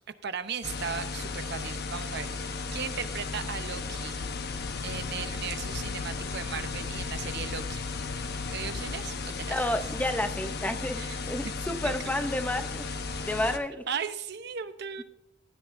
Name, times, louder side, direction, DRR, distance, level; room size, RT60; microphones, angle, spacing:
voice 1, 0.2-4.2 4.8-7.9 8.5-9.7 11.0-11.2 11.4-11.5 11.8-11.9 13.9-15.0, right 7 dB, 60° right, 10 dB, 0.8 m, -37 dB
sound 1, 0.6-13.6, left 4 dB, 55° left, 1.0 m, -35 dB
sound 2, 4.2-9.3, left 6 dB, 85° left, 0.4 m, -42 dB
voice 2, 9.5-12.9 13.2-13.9, left 1 dB, 10° left, 8 dB, 0.7 m, -30 dB
16.0 x 11.0 x 2.6 m, 0.82 s
head